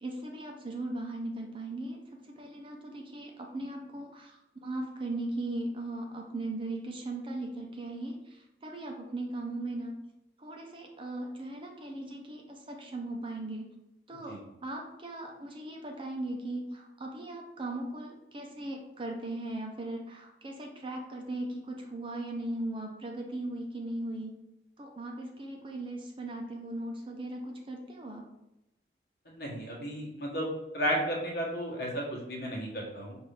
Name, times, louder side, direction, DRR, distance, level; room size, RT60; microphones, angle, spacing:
voice 1, 0.0-9.9 10.4-13.7 14.1-24.4 24.8-28.3, right 2 dB, 30° right, 1 dB, 0.6 m, -38 dB
voice 2, 29.3-30.5 30.7-33.2, equal, 60° left, -2 dB, 1.2 m, -33 dB
5.4 x 2.6 x 3.3 m, 0.89 s
head